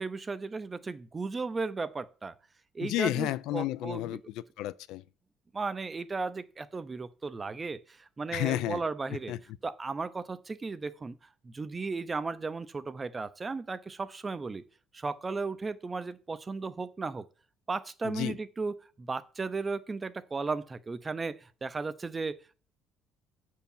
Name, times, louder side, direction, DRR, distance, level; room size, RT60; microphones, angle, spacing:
voice 1, 0.0-2.3 2.7-4.2 5.5-9.3 9.6-11.2 11.4-14.6 14.9-17.3 17.7-22.5, right 4 dB, 15° right, 0.5 m, -35 dB
voice 2, 2.8-5.0 8.3-8.8 9.1-9.4 18.0-18.4, left 15 dB, 75° left, 0.4 m, -32 dB
7.8 x 4.6 x 7.1 m
cardioid pair, 165°, 0 cm